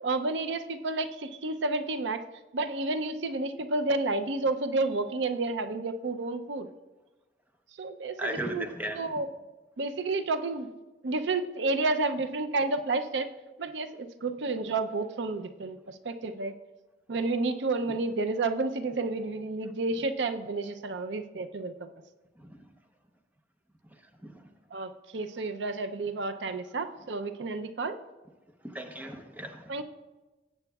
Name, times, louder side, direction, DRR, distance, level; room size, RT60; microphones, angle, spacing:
voice 1, 0.0-2.2 2.5-6.7 7.8-8.7 8.9-9.3 9.8-10.7 11.0-13.3 13.6-16.5 17.1-21.9 24.7-28.0 29.7-29.8, right 3 dB, 85° right, 9 dB, 0.6 m, -30 dB
voice 2, 8.2-9.1 17.9-18.0 22.4-22.6 24.2-24.4 28.6-29.7, right 1 dB, 10° right, 5 dB, 0.8 m, -36 dB
17.5 x 8.0 x 2.3 m, 1.1 s
head